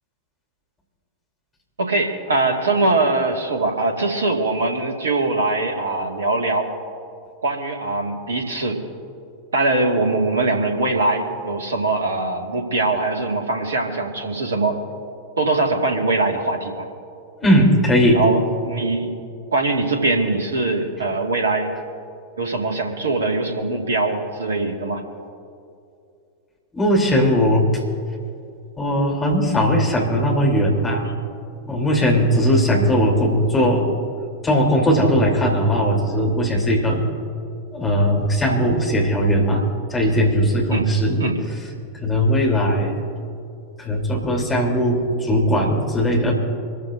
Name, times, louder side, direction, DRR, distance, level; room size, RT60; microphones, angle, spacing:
voice 1, 1.8-6.7 7.4-8.8 9.5-14.8 15.4-16.9 18.1-19.1 19.5-21.7 22.4-25.0 40.7-40.9 41.2-41.4, right 2 dB, 70° right, 3 dB, 1.9 m, -22 dB
voice 2, 17.4-18.2 26.7-27.7 28.8-31.1 31.7-33.9 34.4-37.0 37.7-39.6 39.9-41.2 41.9-42.9 43.8-46.3, equal, 15° left, -1 dB, 3.4 m, -18 dB
26.0 x 14.5 x 2.6 m, 2.5 s
figure-of-eight pair, 90°, 0 cm